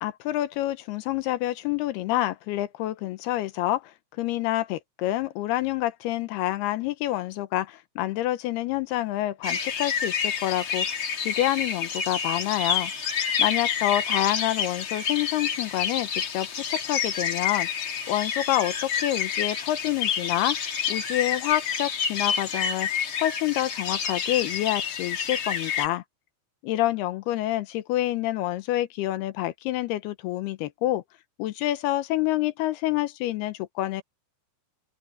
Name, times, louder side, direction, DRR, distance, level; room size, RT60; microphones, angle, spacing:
voice 1, 0.0-3.8 4.2-10.9 11.2-12.9 13.4-20.6 20.9-22.9 23.2-26.0 26.6-31.0 31.4-34.0, left 15 dB, 75° left, 2.4 m, -27 dB
sound 1, 9.4-25.9, left 7 dB, 60° left, 1.4 m, -28 dB
open air
omnidirectional pair, 5.4 m